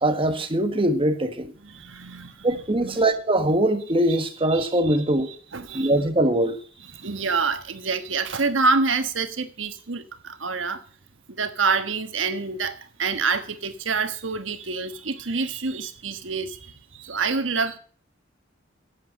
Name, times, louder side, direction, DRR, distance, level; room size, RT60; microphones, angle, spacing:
voice 1, 0.0-1.5 2.4-5.3 5.7-6.6, right 1 dB, 30° right, 1.5 m, -22 dB
voice 2, 1.6-3.0 4.1-5.0 5.5-5.9 6.8-10.8 11.3-17.8, right 4 dB, 80° right, 1.5 m, -27 dB
11.5 x 7.8 x 7.5 m
head